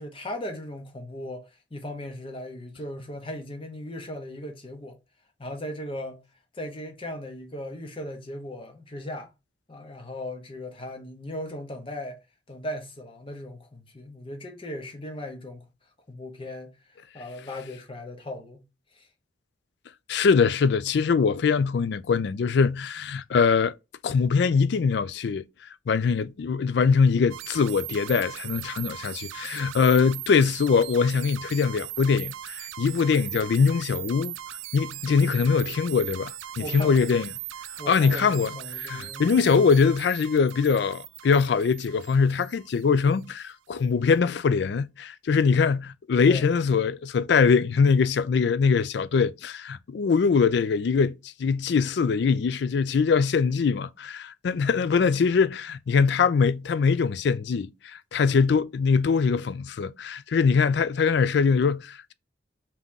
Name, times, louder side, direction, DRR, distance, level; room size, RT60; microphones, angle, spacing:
voice 1, 0.0-5.0 5.4-6.3 6.5-9.3 9.7-12.2 12.5-15.7 16.1-18.6 18.9-19.1 35.1-35.3 36.6-37.1 37.8-39.6 46.2-46.5, left 1 dB, 30° left, 0.8 m, -37 dB
voice 2, 20.1-23.7 24.0-25.4 25.9-34.4 34.7-37.3 37.9-38.6 38.8-62.1, left 5 dB, 60° left, 0.3 m, -22 dB
sound 1, 27.3-43.2, right 14 dB, 80° right, 0.4 m, -39 dB
3.7 x 2.9 x 3.6 m
head